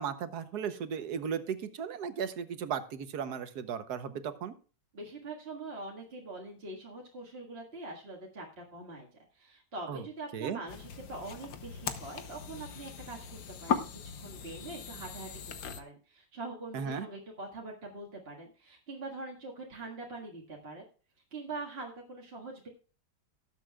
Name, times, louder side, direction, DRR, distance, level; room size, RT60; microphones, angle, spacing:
voice 1, 0.0-4.5 9.9-10.0 10.3-10.6 16.7-17.1, right 7 dB, 70° right, 10 dB, 1.5 m, -36 dB
voice 2, 4.9-9.1 9.3-20.9 21.3-22.7, right 2 dB, 35° right, -2 dB, 2.0 m, -43 dB
sound 1, 10.7-15.8, left 6 dB, 75° left, 1.5 m, -38 dB
18.5 x 7.7 x 2.3 m, 0.37 s
omnidirectional pair, 1.8 m